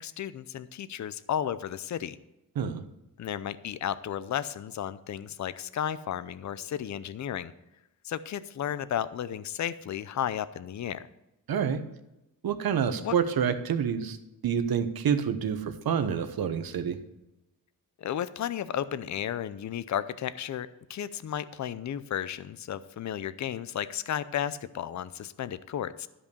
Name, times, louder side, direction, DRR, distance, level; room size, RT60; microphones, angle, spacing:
voice 1, 0.0-2.2 3.2-7.5 8.0-11.1 13.0-13.1 18.0-26.1, left 10 dB, 50° left, 15 dB, 0.6 m, -33 dB
voice 2, 11.5-11.8 12.4-14.2 14.4-17.0, right 7 dB, 75° right, 10 dB, 1.0 m, -28 dB
12.5 x 5.4 x 6.9 m, 0.93 s
wide cardioid pair, 145°, 36 cm